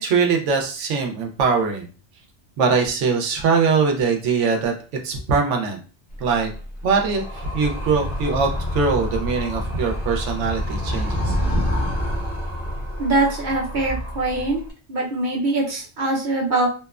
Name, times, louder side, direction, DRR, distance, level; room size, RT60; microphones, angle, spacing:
voice 1, 0.0-1.9 2.6-4.7 5.0-5.8 6.2-6.5 6.8-11.4, right 5 dB, 85° right, 2 dB, 0.9 m, -22 dB
Animal, 6.1-14.7, equal, 35° left, 0.7 m, -27 dB
voice 2, 13.0-14.6 14.9-16.7, right 2 dB, 50° right, -2 dB, 0.7 m, -22 dB
2.9 x 2.1 x 2.3 m, 0.37 s
omnidirectional pair, 1.2 m